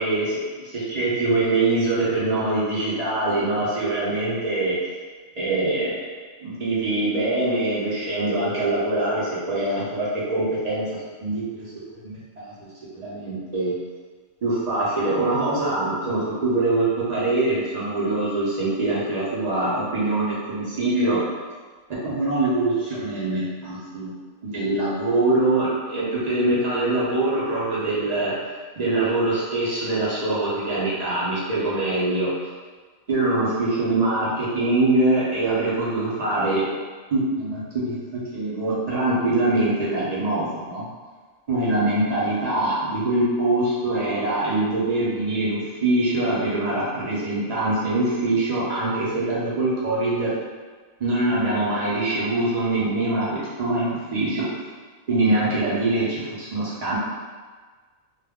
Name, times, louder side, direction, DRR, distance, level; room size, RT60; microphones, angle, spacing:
voice 1, 0.0-4.7 5.4-5.9 6.4-11.7 12.0-12.7 12.9-13.7 14.4-21.2 22.0-24.1 24.4-28.3 28.8-32.3 33.1-36.6 37.1-40.9 41.5-50.3 51.0-54.4 55.1-57.0, right 2 dB, 50° right, -8 dB, 0.5 m, -23 dB
2.3 x 2.1 x 3.4 m, 1.4 s
omnidirectional pair, 1.4 m